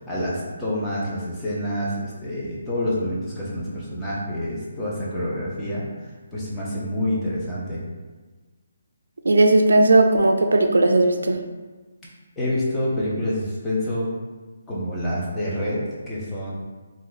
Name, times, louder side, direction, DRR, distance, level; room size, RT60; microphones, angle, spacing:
voice 1, 0.1-5.8 6.3-7.8 12.4-14.1 14.7-16.5, left 1 dB, 10° left, -7 dB, 0.7 m, -27 dB
voice 2, 9.2-11.4, right 2 dB, 85° right, 5 dB, 0.4 m, -17 dB
2.7 x 2.4 x 3.9 m, 1.3 s
hypercardioid pair, 165°, 0 cm